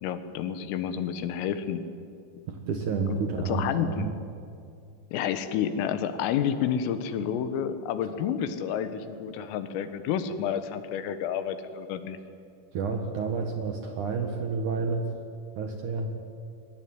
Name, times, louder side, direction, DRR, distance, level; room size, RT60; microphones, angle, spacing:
voice 1, 0.0-1.8 3.1-3.2 3.5-4.2 5.1-12.2, left 8 dB, 90° left, 10 dB, 4.0 m, -30 dB
voice 2, 2.5-4.1 12.7-15.1 15.6-16.2, right 4 dB, 65° right, 4 dB, 2.0 m, -30 dB
22.5 x 20.5 x 9.7 m, 2.4 s
omnidirectional pair, 5.7 m